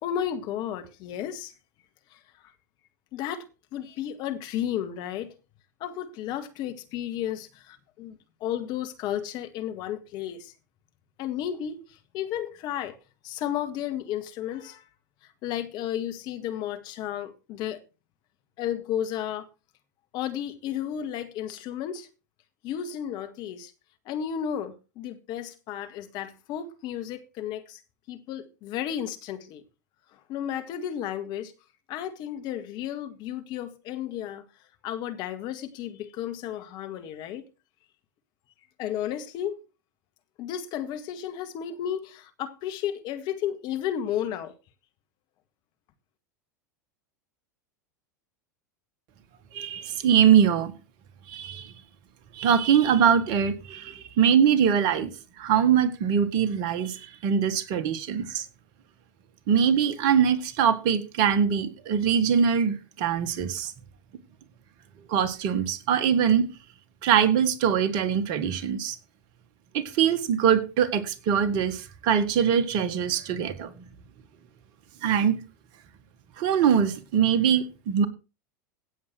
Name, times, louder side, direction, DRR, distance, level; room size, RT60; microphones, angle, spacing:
voice 1, 0.0-1.5 2.1-2.2 3.1-3.5 3.7-5.3 5.8-10.5 11.2-13.0 13.2-14.8 15.2-17.8 18.6-19.5 20.1-22.1 22.6-23.7 24.1-27.8 28.1-29.6 30.1-31.5 31.9-34.4 34.8-37.4 38.8-39.6 40.4-44.5, left 10 dB, 45° left, 1.9 m, -33 dB
voice 2, 49.5-50.7 51.3-51.7 52.3-55.1 55.4-58.5 59.5-63.7 65.1-66.5 67.0-69.0 69.7-73.7 75.0-75.4 76.4-78.1, right 8 dB, 50° right, 1.8 m, -23 dB
16.5 x 7.4 x 4.6 m
figure-of-eight pair, 85°, 10 cm